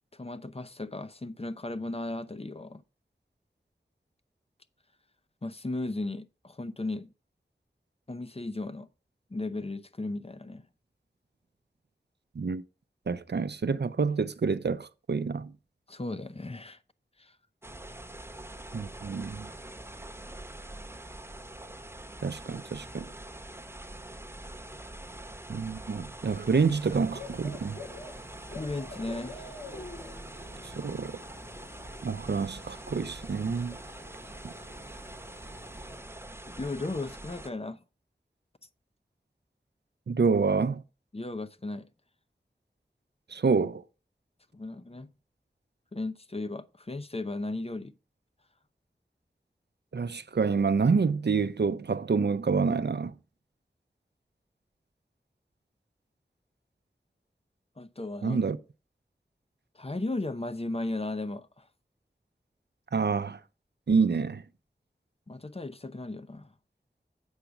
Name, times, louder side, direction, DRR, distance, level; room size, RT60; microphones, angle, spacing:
voice 1, 0.1-2.8 5.4-7.1 8.1-8.9 9.3-10.6 15.9-16.8 17.2-17.3 28.5-29.5 36.5-37.8 41.1-41.9 44.5-45.1 45.9-47.9 57.8-58.4 59.7-61.7 65.3-66.5, left 2 dB, 35° left, 0.6 m, -36 dB
voice 2, 13.1-15.5 18.7-19.5 22.2-23.1 25.5-27.8 30.6-31.2 32.0-33.8 34.4-34.5 40.1-40.8 43.3-43.8 49.9-53.1 58.2-58.6 62.9-63.4 63.9-64.4, right 5 dB, 70° right, 0.5 m, -27 dB
sound 1, 17.6-37.5, right 1 dB, 15° right, 0.9 m, -44 dB
Bird / Cricket, 26.2-36.0, left 2 dB, 55° left, 1.6 m, -48 dB
8.1 x 5.8 x 5.0 m
wide cardioid pair, 45°, 18 cm